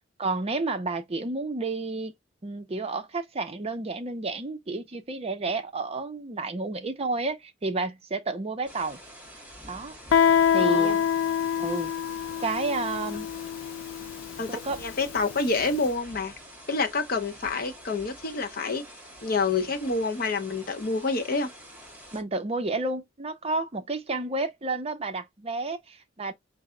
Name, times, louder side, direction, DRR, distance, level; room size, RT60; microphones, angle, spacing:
voice 1, 0.2-2.1 2.4-9.0 9.7-10.0 10.5-11.0 11.6-11.9 12.4-13.3 14.5-14.8 22.1-26.3, right 3 dB, 30° right, 0.5 m, -31 dB
sound 1, 8.7-22.2, equal, 10° right, 1.7 m, -47 dB
Guitar, 10.1-15.6, left 8 dB, 80° left, 0.3 m, -25 dB
voice 2, 10.6-11.0 14.4-14.5 14.8-16.3 16.7-18.8 19.2-21.5, left 3 dB, 50° left, 0.9 m, -28 dB
5.3 x 2.0 x 3.7 m
head